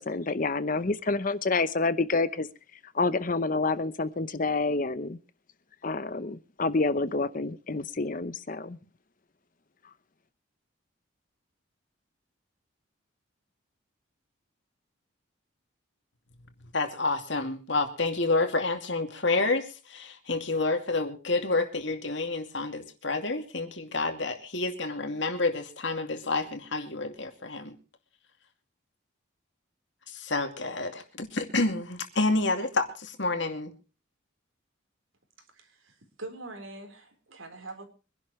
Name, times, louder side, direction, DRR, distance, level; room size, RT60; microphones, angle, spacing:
voice 1, 0.0-2.5 2.9-5.2 5.8-8.8, left 3 dB, 40° left, 14 dB, 0.8 m, -28 dB
voice 2, 16.7-27.7 30.1-33.7, left 3 dB, 60° left, 6 dB, 2.5 m, -29 dB
voice 3, 35.5-37.8, right 2 dB, 80° right, 6 dB, 4.1 m, -43 dB
24.5 x 11.5 x 3.2 m, 0.34 s
head